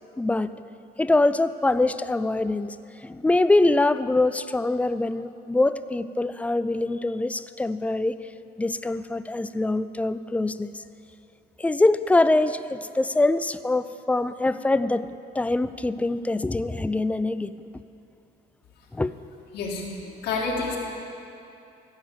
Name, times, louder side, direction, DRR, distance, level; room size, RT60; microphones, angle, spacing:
voice 1, 0.2-0.5 1.0-2.8 3.0-8.2 8.6-10.7 11.6-15.1 15.3-17.5 18.9-19.1, left 2 dB, 10° left, 13 dB, 0.3 m, -23 dB
voice 2, 19.5-20.8, left 3 dB, 80° left, -4 dB, 2.1 m, -29 dB
15.0 x 5.7 x 7.6 m, 2.7 s
cardioid pair, 110°, 17 cm